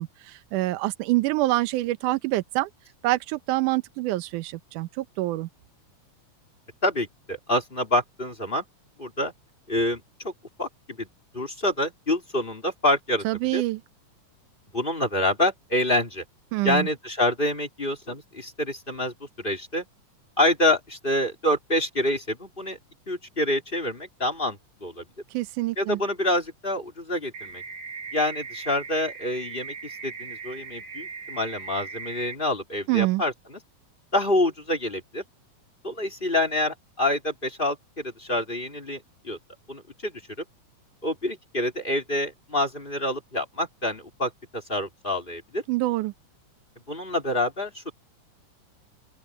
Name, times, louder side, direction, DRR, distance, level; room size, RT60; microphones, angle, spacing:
voice 1, 0.0-2.7 3.0-5.5 13.3-13.8 16.5-16.9 25.3-26.0 32.9-33.2 45.7-46.1, right 18 dB, 85° right, 2.3 m, -26 dB
voice 2, 6.8-8.7 9.0-9.3 9.7-10.3 10.6-11.1 11.3-13.6 14.7-16.2 16.6-19.8 20.4-22.8 23.1-25.1 25.8-27.6 28.1-33.6 34.1-35.2 35.8-39.4 39.7-40.1 41.0-45.6 46.9-47.9, left 1 dB, 15° left, 3.4 m, -27 dB
sound 1, 27.3-32.3, right 5 dB, 65° right, 4.0 m, -39 dB
open air
omnidirectional pair, 3.5 m